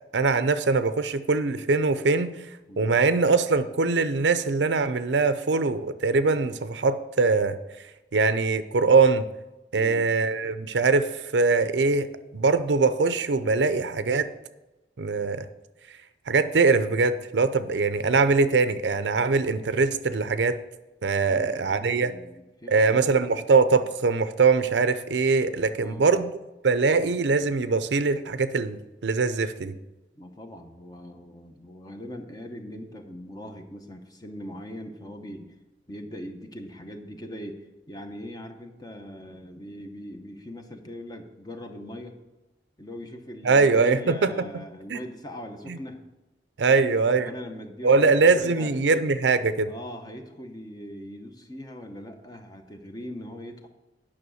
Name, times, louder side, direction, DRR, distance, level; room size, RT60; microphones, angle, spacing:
voice 1, 0.1-2.3 2.8-7.6 8.1-9.3 9.7-14.3 15.0-15.5 16.3-20.6 21.0-22.1 22.7-26.3 26.6-29.7 43.4-44.6 44.9-45.0 45.7-45.8 46.6-47.3 47.8-49.7, right 4 dB, 75° right, 12 dB, 0.6 m, -22 dB
voice 2, 9.7-10.1 21.3-23.1 25.8-26.1 30.1-35.5 35.9-42.2 42.8-46.0 46.7-48.7 49.7-53.7, equal, 20° left, 5 dB, 0.9 m, -41 dB
9.5 x 5.9 x 6.3 m, 1.0 s
head